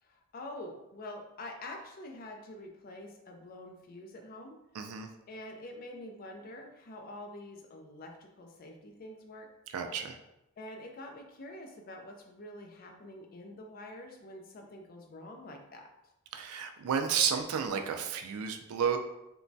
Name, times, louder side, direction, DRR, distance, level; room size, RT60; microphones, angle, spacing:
voice 1, 0.0-4.6 5.3-9.5 10.6-15.8, left 1 dB, 40° left, 3 dB, 0.3 m, -46 dB
voice 2, 4.7-5.1 9.7-10.2 16.3-19.0, right 7 dB, 75° right, 6 dB, 0.3 m, -31 dB
3.0 x 2.2 x 2.6 m, 0.91 s
head